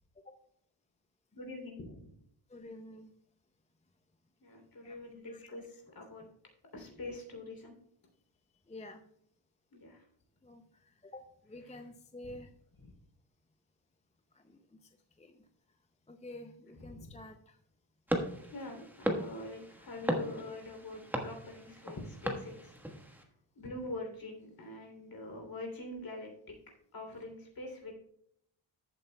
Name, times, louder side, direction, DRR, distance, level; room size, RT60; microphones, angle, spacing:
voice 1, 1.3-2.1 4.4-6.2 6.7-7.7 9.7-10.0 12.8-12.9 16.8-17.2 18.5-22.7 23.5-26.5 26.9-27.9, left 2 dB, 45° left, 2 dB, 3.1 m, -44 dB
voice 2, 2.5-3.1 4.8-5.0 5.2-5.5 8.7-9.0 10.4-12.5 14.3-15.5 16.1-17.6, left 1 dB, 15° left, 6 dB, 0.5 m, -50 dB
sound 1, 18.1-23.2, equal, 5° right, 1.2 m, -37 dB
14.5 x 8.0 x 2.2 m, 0.71 s
wide cardioid pair, 150°, 47 cm